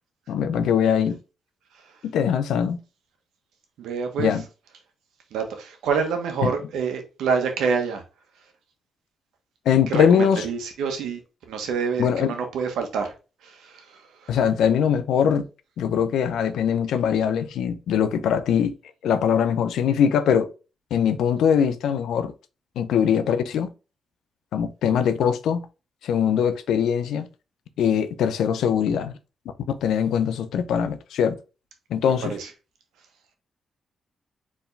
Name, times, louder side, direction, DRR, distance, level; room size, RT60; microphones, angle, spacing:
voice 1, 0.3-1.2 2.0-2.8 4.2-4.4 6.4-6.5 9.7-10.4 12.0-12.3 14.3-15.4 15.8-18.8 19.0-20.5 20.9-22.3 22.8-23.7 24.5-25.6 26.0-27.3 27.8-29.1 29.8-31.4 31.9-32.3, left 8 dB, 85° left, 0.6 m, -22 dB
voice 2, 1.7-2.0 3.8-4.4 5.3-8.0 9.9-11.2 11.5-13.1 13.4-14.4 32.0-32.5, right 5 dB, 85° right, 1.2 m, -27 dB
4.6 x 3.6 x 3.2 m
cardioid pair, 70°, 0 cm